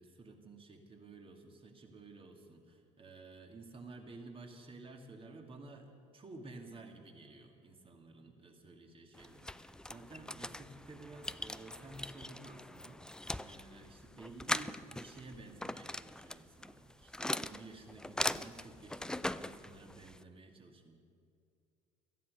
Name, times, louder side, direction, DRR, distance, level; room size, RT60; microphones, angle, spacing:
voice 1, 0.0-20.9, right 3 dB, 35° right, 3 dB, 2.3 m, -53 dB
sound 1, 9.1-20.2, left 1 dB, 5° left, 0.4 m, -41 dB
18.0 x 13.0 x 5.4 m, 2.4 s
hypercardioid pair, 60°, 17 cm